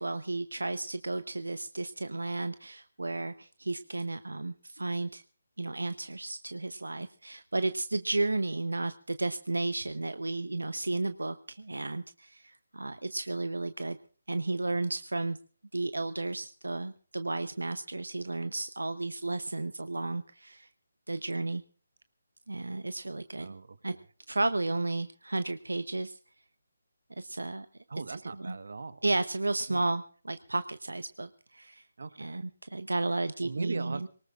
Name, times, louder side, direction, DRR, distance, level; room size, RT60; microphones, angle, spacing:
voice 1, 0.0-5.2 5.6-14.0 14.3-15.4 15.7-20.7 21.1-21.6 22.5-23.5 23.8-24.0 24.3-26.2 27.2-27.7 28.1-28.2 28.5-28.6 29.0-30.0 30.3-31.8 32.2-32.4 32.7-34.0, right 2 dB, 85° right, 12 dB, 0.8 m, -33 dB
voice 2, 23.3-24.1 27.9-29.0 29.7-29.9 32.0-32.4 33.4-34.1, right 4 dB, 65° right, 13 dB, 1.4 m, -40 dB
23.0 x 19.5 x 2.5 m, 0.40 s
figure-of-eight pair, 150°, 0 cm